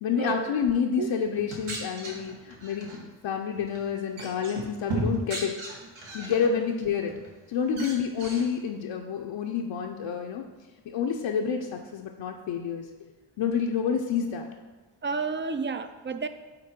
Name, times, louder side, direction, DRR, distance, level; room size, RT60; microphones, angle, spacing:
voice 1, 0.0-5.5 6.1-7.1 7.5-10.4 10.9-12.9 13.4-14.5, left 7 dB, 65° left, 2 dB, 0.6 m, -28 dB
sound 1, 1.3-3.0 3.5-3.8 4.2-6.5 6.9-7.3 7.7-8.4, right 1 dB, 75° right, 1.4 m, -35 dB
voice 2, 15.0-16.3, right 5 dB, 25° right, 10 dB, 0.4 m, -30 dB
5.1 x 4.3 x 4.3 m, 1.2 s
cardioid pair, 55°, 48 cm